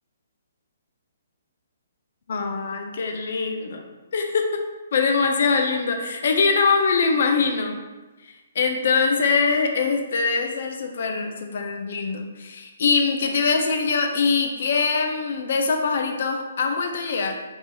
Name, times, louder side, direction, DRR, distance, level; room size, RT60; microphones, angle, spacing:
voice 1, 2.3-3.8 4.1-4.4 4.9-7.8 8.2-17.4, left 4 dB, 60° left, 4 dB, 0.4 m, -23 dB
3.0 x 2.5 x 3.7 m, 1.2 s
hypercardioid pair, 140°, 0 cm